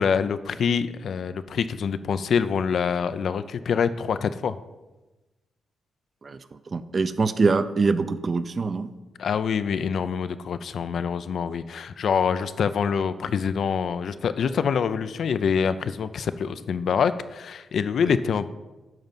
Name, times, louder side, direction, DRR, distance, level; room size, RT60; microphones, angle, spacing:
voice 1, 0.0-4.6 9.2-18.5, left 6 dB, 60° left, 12 dB, 0.4 m, -25 dB
voice 2, 6.7-8.9 18.0-18.2, right 4 dB, 35° right, 11 dB, 0.5 m, -24 dB
10.5 x 4.0 x 7.3 m, 1.1 s
cardioid pair, 115°, 0 cm